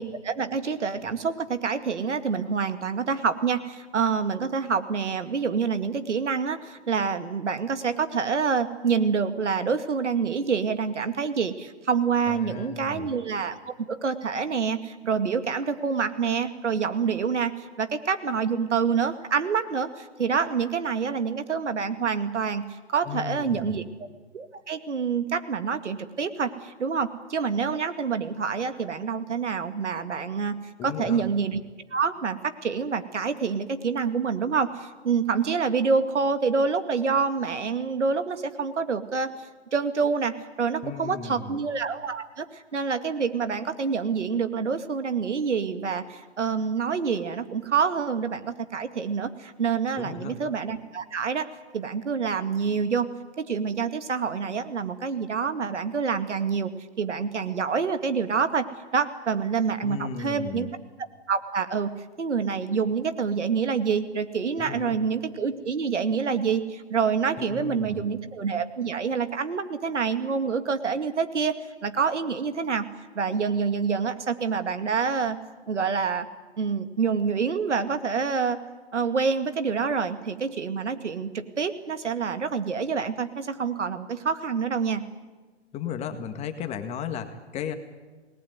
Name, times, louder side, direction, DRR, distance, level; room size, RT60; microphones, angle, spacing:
voice 1, 0.0-24.1 24.3-30.6 30.8-31.6 31.9-39.3 39.7-51.5 51.7-53.1 53.4-56.7 57.0-58.6 58.9-60.7 61.3-61.9 62.2-71.5 71.8-72.9 73.1-75.4 75.7-76.3 76.6-78.6 78.9-85.0, right 5 dB, 80° right, 9 dB, 2.3 m, -27 dB
voice 2, 12.3-13.1 23.0-23.8 30.8-31.2 40.8-41.6 50.0-50.3 59.8-60.7 64.6-65.0 67.4-68.1 85.7-87.7, left 7 dB, 20° left, 8 dB, 1.8 m, -35 dB
27.5 x 19.5 x 9.5 m, 1.3 s
hypercardioid pair, 140°, 35 cm